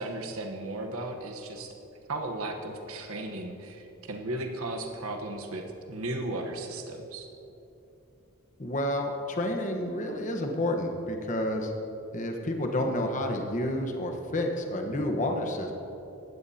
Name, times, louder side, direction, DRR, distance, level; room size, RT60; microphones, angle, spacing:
voice 1, 0.0-1.7 2.1-7.3, right 2 dB, 85° right, 3 dB, 1.1 m, -35 dB
voice 2, 8.6-11.7 12.1-15.7, left 1 dB, 35° left, 3 dB, 1.2 m, -30 dB
17.5 x 12.5 x 2.9 m, 3.0 s
head